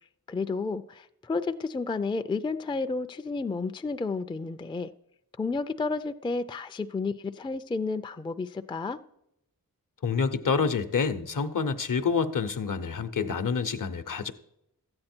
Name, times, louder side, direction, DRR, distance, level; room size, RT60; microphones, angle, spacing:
voice 1, 0.3-4.9 5.4-9.0, left 4 dB, 15° left, 11 dB, 0.3 m, -31 dB
voice 2, 10.0-14.3, left 5 dB, 65° left, 12 dB, 0.7 m, -27 dB
13.0 x 8.8 x 4.4 m, 0.81 s
wide cardioid pair, 70°, 35 cm